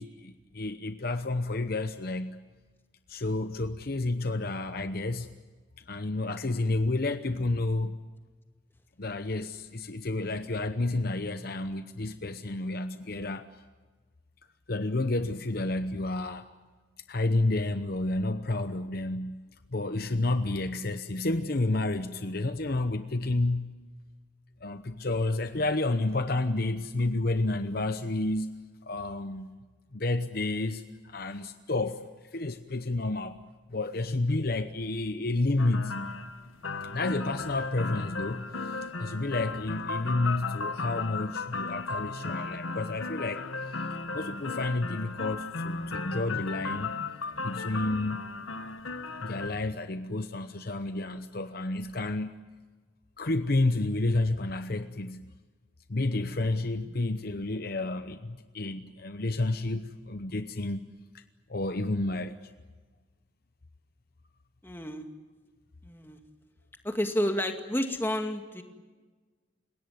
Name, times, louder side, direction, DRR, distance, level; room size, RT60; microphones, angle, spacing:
voice 1, 0.0-2.4 3.1-5.3 5.9-8.0 9.0-13.5 14.7-16.5 17.1-19.4 19.7-23.7 24.6-28.5 28.8-29.6 29.9-33.4 33.7-36.0 36.9-43.8 44.1-46.9 47.4-48.3 49.2-52.3 53.2-55.3 55.9-60.8 61.1-61.2 61.5-62.4, left 2 dB, 50° left, 10 dB, 0.9 m, -30 dB
sound 1, 35.6-49.5, left 4 dB, 85° left, 1.6 m, -36 dB
voice 2, 64.6-65.1 65.8-66.2 66.8-68.6, equal, 10° left, 5 dB, 2.2 m, -30 dB
29.5 x 17.5 x 9.3 m, 1.4 s
head